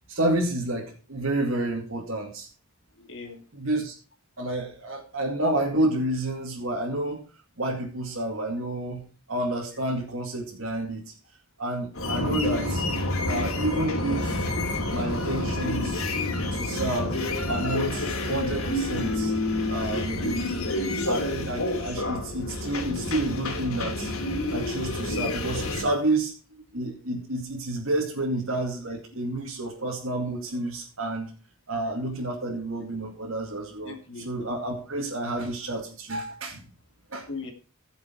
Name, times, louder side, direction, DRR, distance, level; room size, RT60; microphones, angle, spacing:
voice 1, 0.1-2.5 3.5-3.9 4.4-7.2 7.6-9.0 9.3-11.0 11.6-12.9 13.3-14.5 14.9-16.1 16.5-19.3 19.7-20.4 21.1-24.1 24.5-26.3 26.7-31.3 31.7-36.7 37.1-37.3, right 1 dB, 65° right, -3 dB, 2.6 m, -29 dB
voice 2, 3.0-3.4 19.8-20.2 22.4-22.6 33.8-34.5 37.3-37.5, left 3 dB, 55° left, 3 dB, 2.3 m, -38 dB
sound 1, 11.9-25.8, left 2 dB, 80° left, 2.9 m, -28 dB
16.0 x 7.3 x 4.7 m, 0.35 s
head